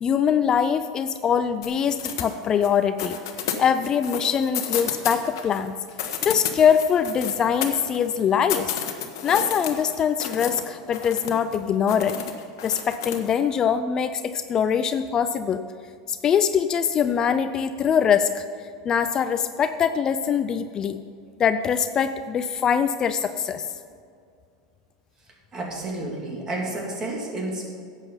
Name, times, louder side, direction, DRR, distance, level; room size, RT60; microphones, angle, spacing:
voice 1, 0.0-3.2 3.6-5.7 6.2-8.7 9.2-12.2 12.6-15.6 16.1-18.4 18.8-21.0 21.4-23.7, left 7 dB, 35° left, 11 dB, 0.4 m, -23 dB
sound 1, 1.6-2.7 3.0-5.6 5.9-8.1 8.5-10.6 10.9-11.6 11.9-13.3, left 9 dB, 70° left, 1.2 m, -31 dB
voice 2, 25.5-27.7, right 2 dB, 30° right, -1 dB, 2.9 m, -30 dB
11.0 x 8.2 x 5.6 m, 2.2 s
hypercardioid pair, 95°, 2 cm